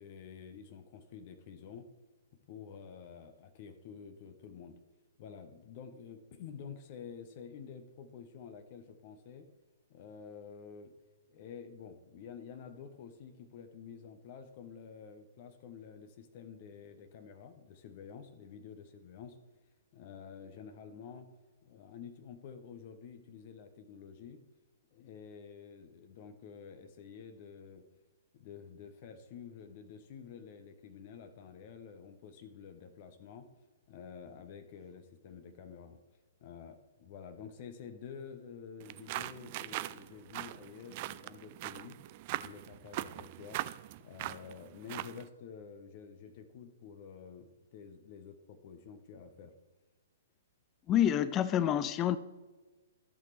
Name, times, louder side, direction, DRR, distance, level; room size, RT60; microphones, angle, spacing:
voice 1, 0.0-1.9 2.5-4.8 5.2-9.5 9.9-10.9 11.3-19.4 19.9-21.3 21.6-24.4 24.9-27.8 28.3-33.5 33.9-36.0 36.4-42.0 42.4-43.6 44.0-49.5, left 7 dB, 45° left, 8 dB, 0.9 m, -49 dB
sound 1, 38.8-45.3, right 16 dB, 45° right, 0.3 m, -41 dB
voice 2, 50.9-52.2, left 10 dB, 25° left, 15 dB, 0.4 m, -27 dB
14.0 x 5.9 x 3.2 m, 1.3 s
figure-of-eight pair, 120°, 0 cm